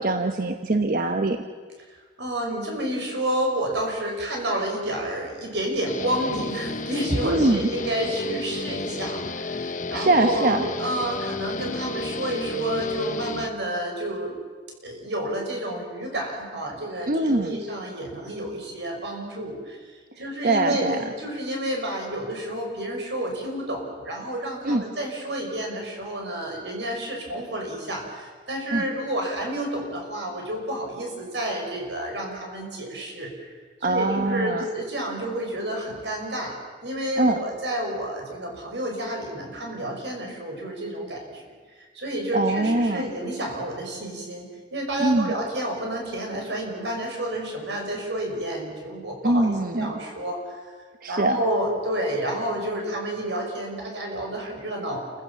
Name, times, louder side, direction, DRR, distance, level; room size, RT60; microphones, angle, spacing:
voice 1, 0.0-1.4 7.2-7.7 9.7-10.6 17.1-17.6 20.4-21.0 24.6-24.8 28.7-28.9 33.8-34.6 37.2-37.4 42.3-43.1 45.0-45.3 49.2-49.9 51.0-51.4, right 2 dB, 50° right, 6 dB, 1.0 m, -23 dB
voice 2, 1.9-14.4 14.8-19.8 20.2-33.5 33.9-41.4 41.9-50.5 51.1-55.0, right 1 dB, 90° right, 1 dB, 5.8 m, -30 dB
Guitar, 5.8-13.5, left 3 dB, 45° left, 0.8 m, -32 dB
29.0 x 15.5 x 7.1 m, 1.5 s
head